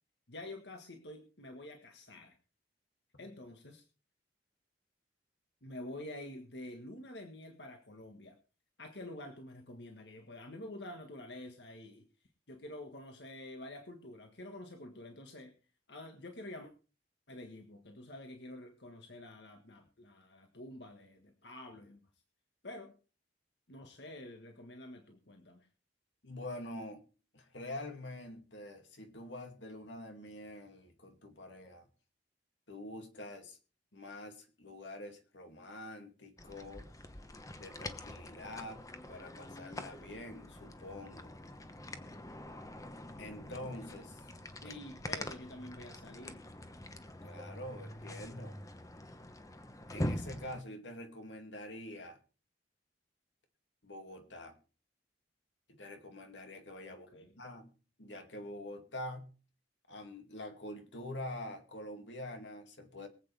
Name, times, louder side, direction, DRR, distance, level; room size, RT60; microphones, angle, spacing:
voice 1, 0.3-2.4 3.2-3.8 5.6-8.4 8.8-12.1 12.5-15.5 15.9-16.7 17.3-22.0 22.6-22.9 23.7-25.7 44.6-46.4 57.1-57.3, left 1 dB, 70° left, 4 dB, 1.7 m, -48 dB
voice 2, 26.2-27.0 27.3-31.9 32.7-33.6 33.9-36.9 37.5-38.8 39.1-41.3 43.2-44.2 44.6-44.8 47.2-48.6 49.9-52.2 53.8-54.6 55.7-57.7 58.0-59.3 59.9-63.1, left 1 dB, 90° left, 5 dB, 2.5 m, -46 dB
sound 1, 36.4-50.6, left 1 dB, 20° left, 1.0 m, -44 dB
23.0 x 8.3 x 3.4 m, 0.36 s
head